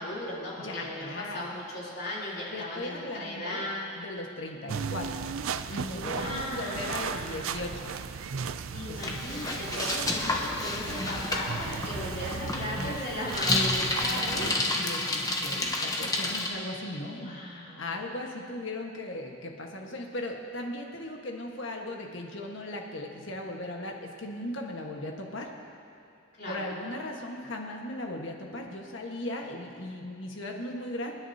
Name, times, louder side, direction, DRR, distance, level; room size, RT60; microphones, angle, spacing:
voice 1, 0.0-3.9 5.9-7.8 8.7-14.7 17.1-18.0 26.4-26.7, left 1 dB, 50° left, -6 dB, 3.4 m, -37 dB
voice 2, 0.6-1.4 2.5-5.2 5.7-7.9 8.9-9.3 11.9-12.2 12.4-13.0 14.7-25.5 26.4-31.1, left 1 dB, 70° left, 1 dB, 1.6 m, -38 dB
sound 1, 4.7-14.6, right 6 dB, 85° right, 0.4 m, -36 dB
Bicycle, 9.0-16.5, left 2 dB, 20° left, 1.0 m, -30 dB
28.0 x 9.8 x 2.9 m, 2.7 s
head